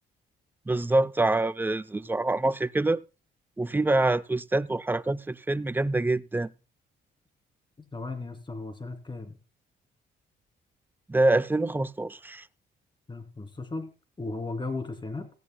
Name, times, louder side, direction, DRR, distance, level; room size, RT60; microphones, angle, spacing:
voice 1, 0.7-3.0 3.6-6.5 11.1-12.4, right 2 dB, 10° right, 0.5 m, -25 dB
voice 2, 7.9-9.4 13.1-13.9 14.2-15.3, left 3 dB, 25° left, 2.9 m, -36 dB
17.0 x 15.0 x 2.2 m
cardioid pair, 90°, 20 cm